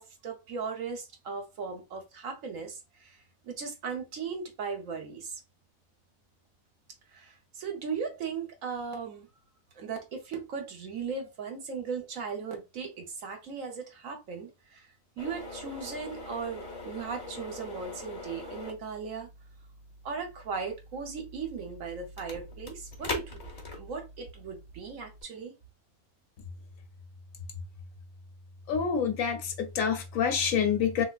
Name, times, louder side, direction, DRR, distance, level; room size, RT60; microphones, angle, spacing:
voice 1, 0.0-3.2 3.4-5.4 7.1-9.3 9.7-14.9 15.2-19.3 20.0-23.4 23.7-25.5, right 5 dB, 70° right, 1.2 m, -37 dB
sound 1, 15.2-25.2, left 2 dB, 30° left, 0.8 m, -43 dB
voice 2, 28.7-31.0, left 7 dB, 70° left, 1.1 m, -27 dB
3.5 x 2.8 x 2.3 m
omnidirectional pair, 1.5 m